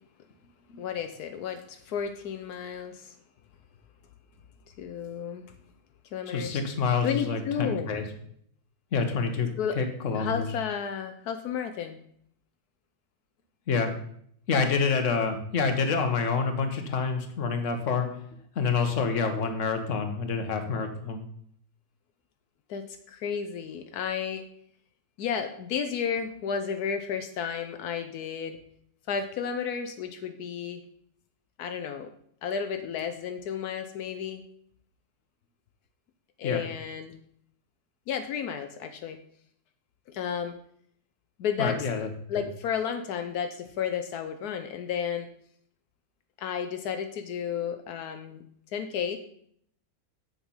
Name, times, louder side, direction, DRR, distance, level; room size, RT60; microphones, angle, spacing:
voice 1, 0.8-3.1 4.8-5.5 6.1-6.6 7.0-7.9 9.6-9.8 10.1-12.0 22.7-24.4 25.2-28.6 29.1-30.8 31.6-32.1 32.4-34.4 36.4-37.2 38.1-39.2 40.1-40.5 41.4-41.9 42.3-45.3 46.4-48.4 48.7-49.2, left 7 dB, 80° left, 7 dB, 1.2 m, -32 dB
voice 2, 6.3-8.0 8.9-9.5 9.7-10.5 13.7-13.9 14.5-18.1 18.5-21.2 36.4-36.6 41.6-42.1 42.3-42.4, left 5 dB, 55° left, 6 dB, 1.5 m, -27 dB
7.6 x 7.2 x 5.5 m, 0.66 s
omnidirectional pair, 1.6 m